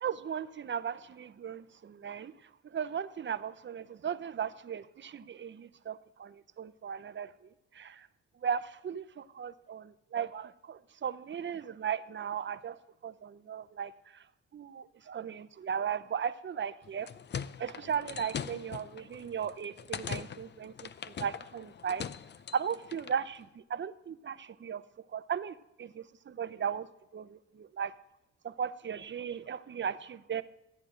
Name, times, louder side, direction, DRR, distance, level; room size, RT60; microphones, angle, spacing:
voice 1, 0.0-2.3 2.7-7.3 7.7-8.1 8.4-12.8 13.0-13.9 14.5-17.1 17.6-22.0 22.5-24.8 25.1-26.9 27.1-27.9 28.4-30.4, right 7 dB, 40° right, 0.7 m, -36 dB
sound 1, 16.8-23.2, left 7 dB, 35° left, 0.5 m, -42 dB
14.0 x 9.3 x 5.0 m
cardioid pair, 90°, 30 cm